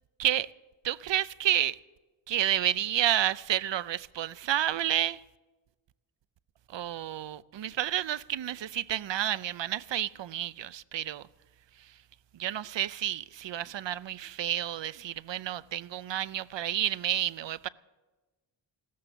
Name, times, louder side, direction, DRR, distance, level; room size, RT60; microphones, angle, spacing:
voice 1, 0.8-1.8 2.3-5.2 6.7-11.2 12.3-17.7, right 12 dB, 60° right, 0.6 m, -30 dB
16.0 x 13.0 x 6.8 m
wide cardioid pair, 135°, 49 cm